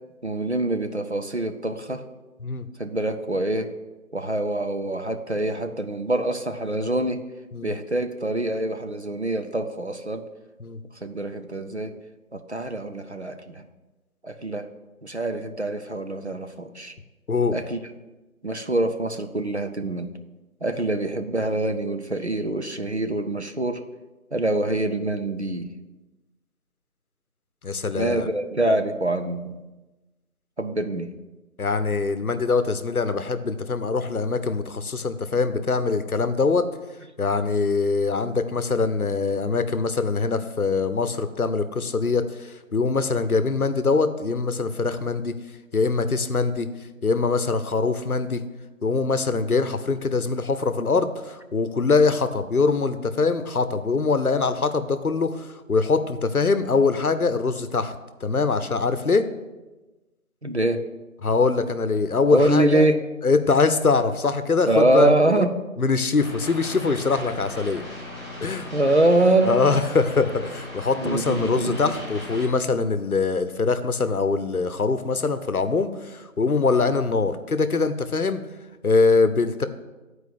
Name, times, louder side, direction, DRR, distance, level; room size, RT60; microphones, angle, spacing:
voice 1, 0.2-2.0 2.8-3.7 4.1-7.3 7.6-10.3 11.0-12.0 12.3-13.6 14.2-14.7 15.0-16.9 17.5-17.8 18.4-20.1 20.6-23.8 24.3-25.7 27.9-29.6 30.6-31.1 60.4-60.9 62.3-63.0 64.7-65.5 68.7-69.6 71.0-71.9, right 2 dB, 55° right, 7 dB, 0.6 m, -24 dB
voice 2, 27.6-28.3 31.6-36.7 37.2-45.3 45.7-46.7 47.0-48.4 48.8-58.0 58.2-59.3 61.2-62.9 63.2-65.4 65.8-67.8 68.4-68.7 69.4-78.4 78.8-79.7, left 4 dB, 90° left, 11 dB, 0.8 m, -23 dB
sound 1, 66.1-72.4, left 1 dB, 10° right, 3.1 m, -38 dB
8.6 x 4.6 x 6.7 m, 1.1 s
figure-of-eight pair, 170°, 43 cm